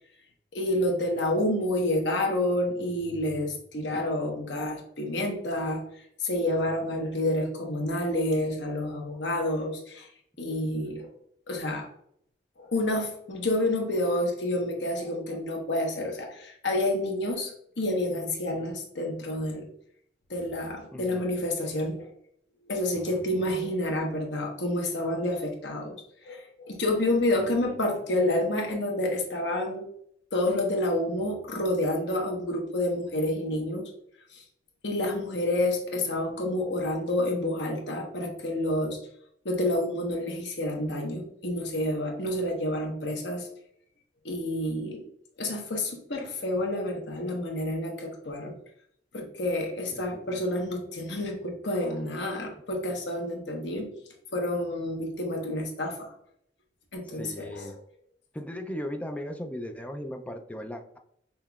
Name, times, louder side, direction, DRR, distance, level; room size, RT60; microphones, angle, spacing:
voice 1, 0.5-10.1 10.4-11.1 11.5-11.9 12.6-19.7 20.3-22.1 22.6-26.0 26.2-29.8 30.3-33.9 34.3-34.4 34.8-39.0 39.4-43.5 44.2-45.0 45.4-48.5 49.1-53.9 54.3-56.1 56.9-57.7, left 1 dB, 70° left, 1 dB, 0.9 m, -29 dB
voice 2, 20.9-21.3 22.9-23.5 27.4-27.6 49.9-50.4 57.1-57.8 58.3-61.0, equal, 10° left, 5 dB, 0.3 m, -38 dB
5.5 x 3.0 x 2.3 m, 0.69 s
head